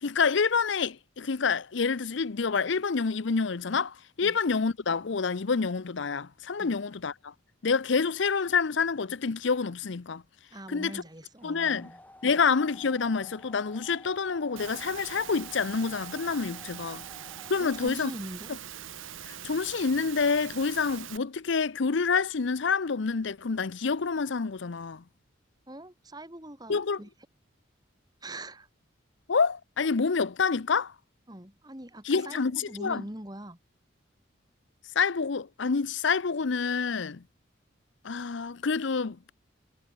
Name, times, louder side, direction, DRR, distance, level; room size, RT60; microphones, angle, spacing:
voice 1, 0.0-7.3 7.6-10.2 10.7-11.0 11.4-11.9 12.2-17.0 17.5-18.1 19.2-25.0 26.7-27.0 29.3-30.9 32.0-33.0 34.9-37.2 38.0-39.3, left 5 dB, 70° left, 0.6 m, -27 dB
voice 2, 10.5-12.4 17.6-18.5 25.7-27.1 28.2-28.7 31.3-33.6, right 1 dB, 20° right, 3.0 m, -42 dB
sound 1, 11.2-17.9, left 1 dB, 10° left, 1.6 m, -52 dB
Engine / Mechanisms, 14.6-21.2, right 10 dB, 85° right, 1.0 m, -42 dB
head